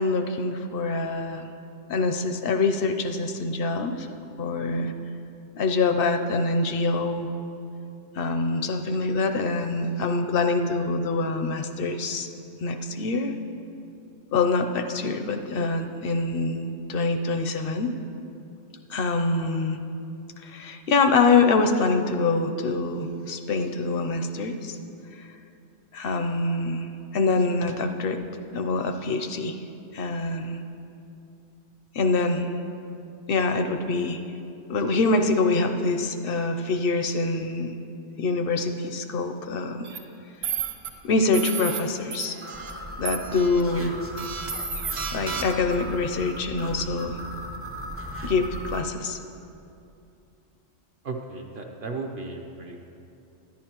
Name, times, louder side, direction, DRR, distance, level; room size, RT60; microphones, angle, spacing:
voice 1, 0.0-1.5 1.9-4.1 4.4-4.9 5.6-7.3 8.1-12.3 12.6-13.4 14.3-17.9 18.9-19.8 20.4-24.8 25.2-25.3 25.9-28.2 28.5-29.6 29.9-30.6 31.9-32.5 33.3-34.2 34.7-37.7 38.2-39.9 41.0-42.4 43.0-44.0 45.1-47.2 48.2-49.2, left 3 dB, 60° left, 7 dB, 0.6 m, -25 dB
sound 1, 39.8-40.0 40.4-40.9 41.3-41.8 42.1-42.7 43.1-43.6 44.2-45.7, right 7 dB, 85° right, 1.2 m, -32 dB
sound 2, 42.4-48.8, right 1 dB, 20° right, 0.3 m, -37 dB
voice 2, 51.0-52.9, right 3 dB, 55° right, 2 dB, 0.7 m, -35 dB
11.0 x 10.5 x 2.9 m, 2.7 s
omnidirectional pair, 1.3 m